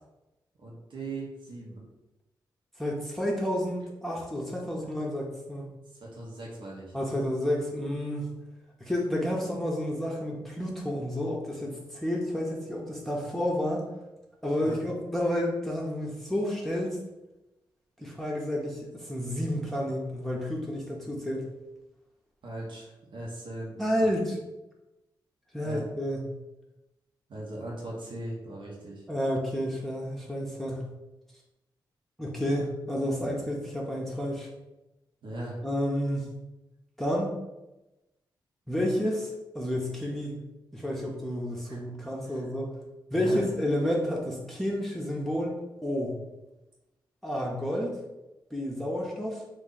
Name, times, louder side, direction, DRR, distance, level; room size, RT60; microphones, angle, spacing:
voice 1, 0.6-1.8 4.8-4.9 6.0-6.9 14.6-14.8 22.4-24.1 25.6-25.8 27.3-29.0 35.2-35.6 41.7-41.8 42.2-42.5 43.1-43.4, right 2 dB, 70° right, -4 dB, 1.0 m, -39 dB
voice 2, 2.8-5.6 6.9-8.3 8.8-13.8 14.4-17.0 18.0-21.5 23.8-24.4 25.5-26.3 29.1-30.9 32.2-34.5 35.6-36.3 37.0-37.4 38.7-40.4 40.7-42.7 43.1-45.6 45.8-46.2 47.2-47.9 48.5-49.4, equal, 5° left, -3 dB, 0.7 m, -30 dB
3.1 x 2.6 x 3.8 m, 0.99 s
cardioid pair, 70°, 8 cm